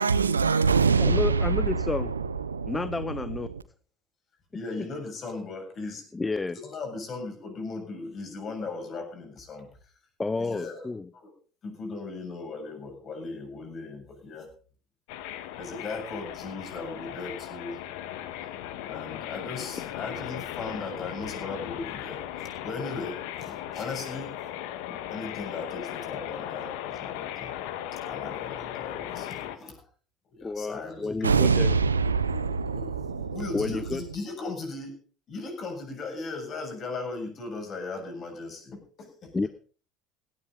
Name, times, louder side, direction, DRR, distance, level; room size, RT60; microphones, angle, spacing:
voice 1, 0.0-3.6 31.2-33.7, right 5 dB, 90° right, 0.8 m, -25 dB
voice 2, 1.0-2.1 2.7-3.5 6.1-6.6 10.2-11.1 30.4-31.7 33.5-34.0 39.3-39.5, left 3 dB, 15° left, 0.7 m, -30 dB
voice 3, 4.5-6.1 6.6-9.9 10.4-10.9 11.1-11.3 11.6-14.5 15.5-17.8 18.9-24.4 25.1-27.5 27.9-29.8 30.3-31.6 32.0-34.9 35.3-39.5, left 3 dB, 40° left, 7.4 m, -38 dB
sound 1, 15.1-29.6, left 11 dB, 65° left, 1.6 m, -37 dB
17.0 x 13.5 x 4.0 m
hypercardioid pair, 70°, 0 cm